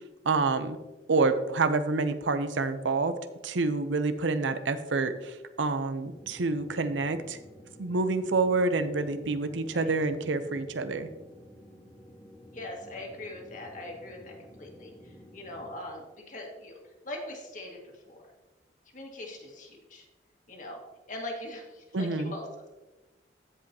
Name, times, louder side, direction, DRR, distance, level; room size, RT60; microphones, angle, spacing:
voice 1, 0.2-0.8 1.1-3.2 3.4-7.4 7.8-11.1 21.9-22.3, right 3 dB, 85° right, 11 dB, 0.6 m, -27 dB
sound 1, 6.0-15.8, equal, 10° left, 0.9 m, -52 dB
voice 2, 12.5-16.8 17.0-17.8 18.1-18.2 18.9-20.0 20.5-20.8 21.1-22.4, left 1 dB, 45° left, 0 dB, 1.8 m, -41 dB
15.5 x 5.3 x 2.8 m, 1.1 s
head